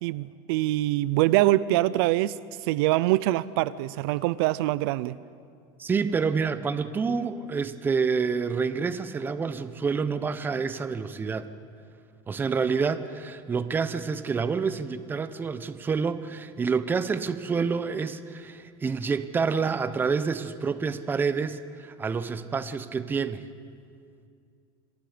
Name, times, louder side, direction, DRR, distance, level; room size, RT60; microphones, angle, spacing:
voice 1, 0.0-2.3 2.7-5.2, right 16 dB, 70° right, 18 dB, 0.5 m, -24 dB
voice 2, 5.8-11.5 12.3-23.4, right 5 dB, 15° right, 12 dB, 0.8 m, -28 dB
28.5 x 22.5 x 5.1 m, 2.3 s
cardioid pair, 155°, 13 cm